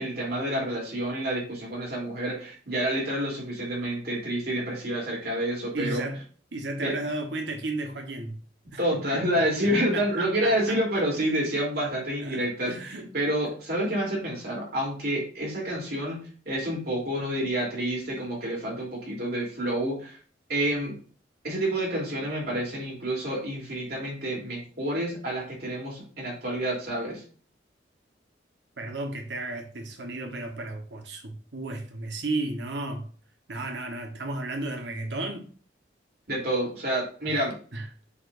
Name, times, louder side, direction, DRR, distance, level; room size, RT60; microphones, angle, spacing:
voice 1, 0.0-6.0 6.8-6.9 8.8-12.7 13.1-16.2 16.4-20.2 20.5-21.0 21.4-27.2 36.3-37.6, right 1 dB, 55° right, 3.4 m, -28 dB
voice 2, 5.7-6.2 6.5-8.4 8.7-9.2 9.6-11.0 12.2-13.1 13.4-13.5 28.8-33.1 33.5-35.5 37.3-37.5 37.7-37.9, right 2 dB, 75° right, 1.2 m, -34 dB
8.5 x 5.1 x 2.6 m
head